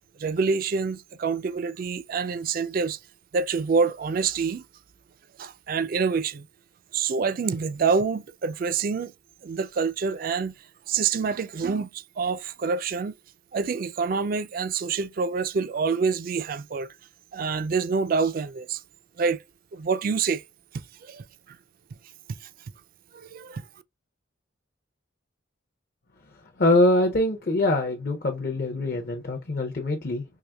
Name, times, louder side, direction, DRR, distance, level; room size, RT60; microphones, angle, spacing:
voice 1, 0.2-3.0 3.3-4.6 5.4-6.5 6.9-9.1 9.4-10.5 10.9-13.1 13.5-16.9 17.3-18.8 19.2-19.4 19.7-20.4 21.0-21.2 22.4-22.5 23.1-23.6, right 5 dB, 45° right, 0.3 m, -26 dB
voice 2, 26.6-30.2, left 2 dB, 45° left, 0.5 m, -23 dB
4.7 x 2.8 x 2.2 m
head